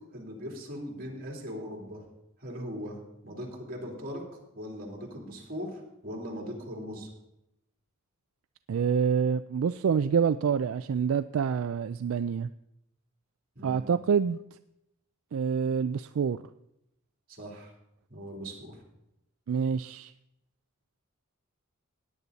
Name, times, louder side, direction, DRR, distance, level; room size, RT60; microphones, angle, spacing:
voice 1, 0.1-2.0 2.4-4.2 4.5-7.1 13.5-13.9 17.3-17.7 18.1-18.8, equal, 45° right, 0 dB, 3.4 m, -39 dB
voice 2, 8.7-12.5 13.6-14.4 15.3-16.4 19.5-20.1, right 6 dB, 75° right, 11 dB, 0.4 m, -27 dB
17.5 x 9.9 x 4.1 m, 0.83 s
head